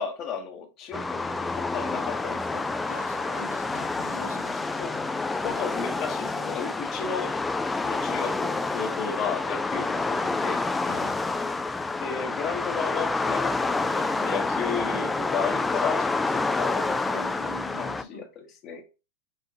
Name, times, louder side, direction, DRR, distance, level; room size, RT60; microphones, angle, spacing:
voice 1, 0.0-2.6 4.8-5.0 5.4-7.4 7.8-10.6 12.0-17.5 17.8-18.8, left 6 dB, 40° left, 1.0 m, -34 dB
sound 1, 0.9-18.0, left 3 dB, 10° left, 0.3 m, -28 dB
voice 2, 2.9-5.0 5.5-5.8 9.7-9.9 10.8-11.2 16.9-18.3, left 2 dB, 80° left, 0.8 m, -44 dB
4.8 x 2.5 x 2.7 m
hypercardioid pair, 100°, 0 cm